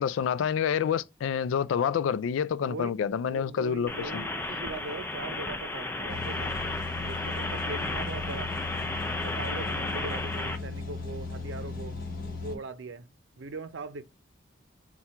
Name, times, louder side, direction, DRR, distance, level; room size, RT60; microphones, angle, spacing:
voice 1, 0.0-4.2, left 7 dB, 85° left, 0.3 m, -28 dB
voice 2, 2.6-6.5 7.0-8.5 9.1-12.0 12.4-13.1 13.4-14.0, right 3 dB, 75° right, 0.6 m, -40 dB
sound 1, 3.9-10.6, left 2 dB, 10° left, 0.4 m, -33 dB
sound 2, 6.1-12.6, left 3 dB, 50° left, 1.0 m, -37 dB
4.3 x 2.3 x 4.6 m
head